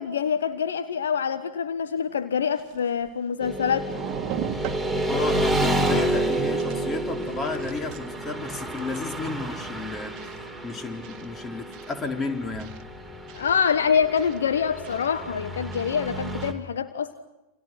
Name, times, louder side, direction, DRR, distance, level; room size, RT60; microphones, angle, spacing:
voice 1, 0.0-3.9 13.3-17.1, left 7 dB, 65° left, 1.3 m, -25 dB
sound 1, 1.9-2.0 2.5-3.5 3.8-5.1 5.5-6.2 6.6-6.9 7.2-8.2 8.8-9.1 10.2-10.4 11.0-11.3 11.7-12.0 12.6-12.8 13.3-13.5 14.2-14.4 14.8-15.1 15.7-16.0 16.4-16.5, right 11 dB, 35° right, 1.8 m, -38 dB
Motorcycle / Traffic noise roadway noise, 3.4-16.5, right 1 dB, 5° left, 4.6 m, -30 dB
voice 2, 5.1-10.2 10.6-12.8, left 2 dB, 20° left, 4.0 m, -32 dB
29.5 x 28.0 x 6.0 m
figure-of-eight pair, 90°, 0 cm